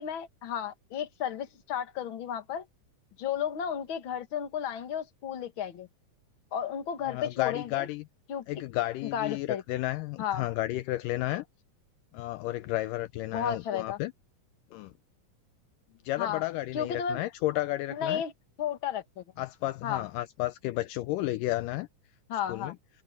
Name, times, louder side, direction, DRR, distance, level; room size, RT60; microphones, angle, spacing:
voice 1, 0.0-2.6 3.2-5.9 6.5-7.9 8.3-8.5 9.1-9.6 10.2-10.5 13.3-14.0 16.2-16.4 16.7-17.2 17.9-18.3 18.6-19.2 19.8-20.1 22.3-22.7, left 8 dB, 45° left, 2.1 m, -33 dB
voice 2, 7.0-8.0 8.5-11.5 12.1-14.1 14.7-14.9 16.1-18.2 19.4-21.9 22.5-22.8, left 16 dB, 80° left, 2.1 m, -32 dB
omnidirectional pair, 3.9 m